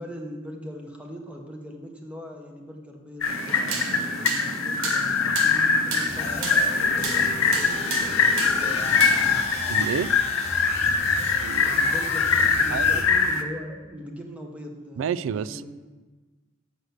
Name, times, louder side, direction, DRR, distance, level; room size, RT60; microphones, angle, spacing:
voice 1, 0.0-7.9 11.7-15.6, equal, 5° right, 1 dB, 1.0 m, -40 dB
sound 1, 3.2-13.4, left 5 dB, 75° left, 0.7 m, -23 dB
sound 2, 3.3-9.4, right 3 dB, 85° right, 1.1 m, -33 dB
sound 3, 6.1-13.0, left 2 dB, 30° left, 1.3 m, -35 dB
voice 2, 9.7-10.1 11.4-11.9 12.7-13.1 15.0-15.6, right 7 dB, 65° right, 16 dB, 0.3 m, -30 dB
6.8 x 6.3 x 6.4 m, 1.3 s
head